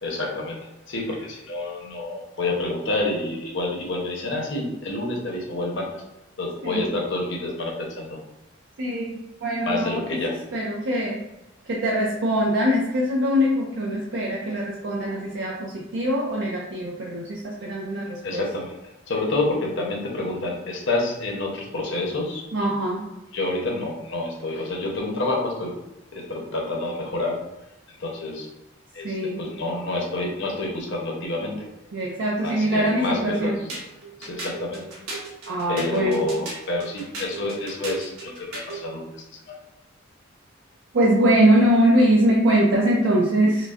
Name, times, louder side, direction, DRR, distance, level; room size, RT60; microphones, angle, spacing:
voice 1, 0.0-5.9 6.4-8.2 9.6-10.4 18.2-18.7 19.1-22.6 23.3-25.7 26.1-27.4 27.9-28.5 28.9-31.7 32.4-33.7 34.2-34.9 35.7-39.0 39.5-39.6, left 2 dB, 55° left, 0 dB, 0.8 m, -28 dB
voice 2, 8.8-10.0 10.5-11.2 11.7-18.4 22.5-23.1 29.0-29.4 31.9-33.6 35.5-36.3 40.9-43.7, right 1 dB, 55° right, -3 dB, 0.5 m, -22 dB
sound 1, 33.7-38.9, right 2 dB, 90° right, 1.2 m, -36 dB
5.1 x 2.1 x 2.4 m, 0.95 s
head